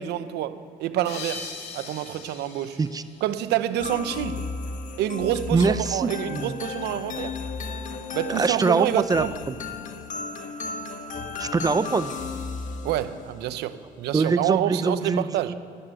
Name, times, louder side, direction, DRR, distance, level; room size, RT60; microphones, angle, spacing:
voice 1, 0.0-2.8 3.2-4.5 5.0-7.3 8.1-9.3 12.8-15.5, right 12 dB, 80° right, 12 dB, 0.9 m, -27 dB
sound 1, 1.0-4.1, left 5 dB, 85° left, 2.3 m, -40 dB
sound 2, 3.8-13.5, left 4 dB, 50° left, 1.3 m, -34 dB
voice 2, 5.5-6.5 8.3-9.6 11.4-12.1 14.1-15.5, right 4 dB, 20° right, 14 dB, 0.6 m, -24 dB
12.5 x 11.0 x 9.1 m, 2.5 s
cardioid pair, 110°, 17 cm